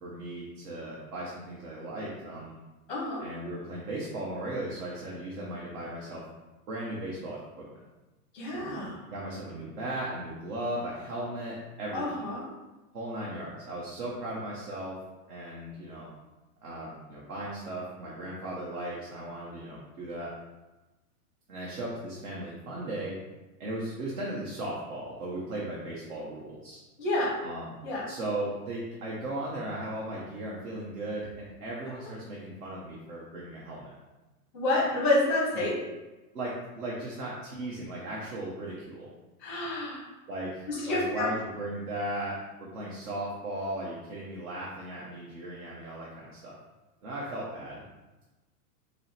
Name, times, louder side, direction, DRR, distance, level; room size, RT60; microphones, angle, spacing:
voice 1, 0.0-2.5 3.2-6.3 6.7-7.8 8.5-8.8 9.1-12.1 12.9-15.0 15.3-16.1 16.6-20.4 21.5-23.2 23.6-26.8 27.4-27.7 28.1-33.9 36.3-39.1 40.3-46.6 47.0-47.8, right 1 dB, 65° right, -5 dB, 1.1 m, -37 dB
voice 2, 2.9-3.2 8.3-9.0 11.9-12.4 27.0-27.4 27.8-28.0 34.5-35.7 39.4-40.0 40.7-41.3, left 2 dB, 5° left, -5 dB, 0.6 m, -28 dB
5.2 x 2.1 x 3.2 m, 1.1 s
supercardioid pair, 170°, 47 cm